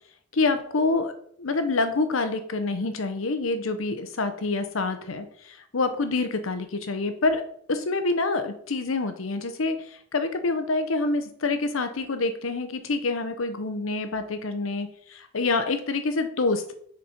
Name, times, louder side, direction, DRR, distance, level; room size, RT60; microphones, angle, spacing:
voice 1, 0.3-7.4 7.7-9.8 10.1-16.7, left 3 dB, 85° left, 9 dB, 0.8 m, -27 dB
6.6 x 4.2 x 4.4 m, 0.63 s
head